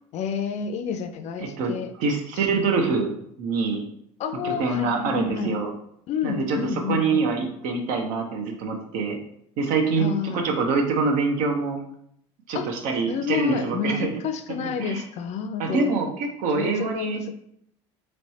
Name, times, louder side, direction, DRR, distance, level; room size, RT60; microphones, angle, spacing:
voice 1, 0.1-1.9 4.2-5.6 6.1-7.3 10.0-10.4 12.5-12.7 13.1-15.9 16.5-17.3, left 6 dB, 50° left, 9 dB, 0.5 m, -29 dB
voice 2, 1.4-1.7 2.0-3.1 3.4-3.8 4.4-5.7 6.2-6.6 6.9-9.2 9.6-11.8 12.5-14.1 14.5-15.0 15.6-17.2, right 4 dB, 65° right, 3 dB, 0.9 m, -25 dB
3.2 x 3.2 x 4.1 m, 0.72 s
hypercardioid pair, 80°, 14 cm